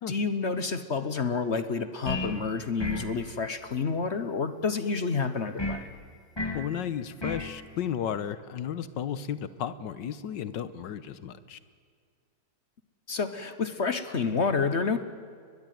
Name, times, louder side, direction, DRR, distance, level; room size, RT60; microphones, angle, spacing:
voice 1, 0.1-5.8 13.1-15.0, left 4 dB, 45° left, 11 dB, 1.2 m, -29 dB
sound 1, 2.1-2.4 2.8-3.2 5.6-5.9 6.4-6.7 7.2-7.5, left 2 dB, 15° left, 1.9 m, -32 dB
voice 2, 6.5-11.6, left 9 dB, 80° left, 14 dB, 1.6 m, -34 dB
22.5 x 20.5 x 9.3 m, 2.1 s
omnidirectional pair, 1.9 m